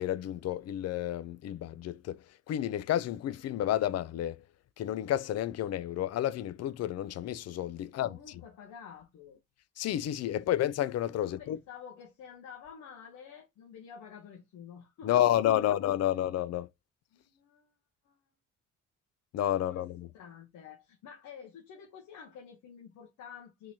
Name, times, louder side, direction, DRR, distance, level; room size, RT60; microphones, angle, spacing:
voice 1, 0.0-4.4 4.8-8.1 9.8-11.6 15.0-16.7 19.3-20.1, left 12 dB, 55° left, 0.4 m, -30 dB
voice 2, 7.8-9.4 10.2-10.5 11.2-15.7 17.1-17.7 18.0-18.2 19.7-19.9 20.1-23.7, left 7 dB, 80° left, 0.9 m, -50 dB
3.7 x 3.0 x 2.7 m
cardioid pair, 90°, 30 cm